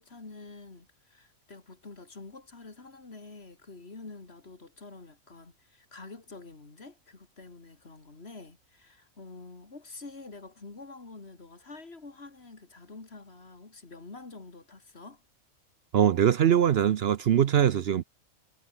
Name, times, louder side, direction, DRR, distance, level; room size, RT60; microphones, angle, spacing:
voice 1, 0.0-15.2, left 3 dB, 45° left, 2.9 m, -47 dB
voice 2, 15.9-18.0, right 9 dB, 55° right, 0.7 m, -22 dB
omnidirectional pair, 1.4 m